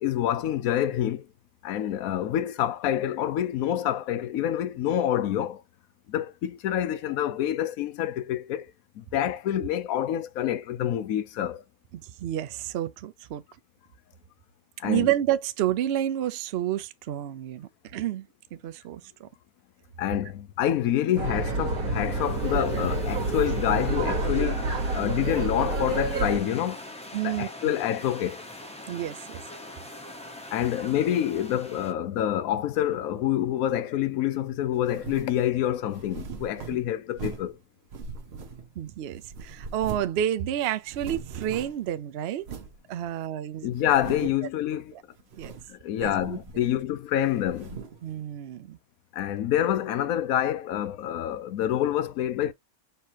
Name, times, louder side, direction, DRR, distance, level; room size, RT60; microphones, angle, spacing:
voice 1, 0.0-1.3 1.6-5.6 6.1-8.7 9.0-11.6 14.8-15.1 20.0-24.7 24.9-26.8 27.2-28.4 30.5-37.6 43.6-44.9 45.7-47.8 49.1-52.5, left 11 dB, 70° left, 1.0 m, -27 dB
voice 2, 11.9-13.4 14.8-19.3 27.1-27.7 28.9-29.4 38.8-42.5 42.9-43.7 44.2-44.3 44.9-45.0 45.4-45.5 46.0-46.8 48.0-48.8, right 11 dB, 85° right, 0.5 m, -30 dB
sound 1, 21.2-31.9, left 1 dB, 5° left, 0.7 m, -43 dB
sound 2, 21.2-26.4, right 2 dB, 65° right, 1.7 m, -28 dB
sound 3, 34.8-35.4 35.9-37.6 37.9-38.9 39.2-40.2 40.5-40.6 40.8-41.9 42.4-42.8 43.3-43.4 43.8-44.4 45.2-45.7 46.0-46.9 47.2-48.0, right 5 dB, 50° right, 0.9 m, -40 dB
4.6 x 3.1 x 2.9 m
omnidirectional pair, 1.6 m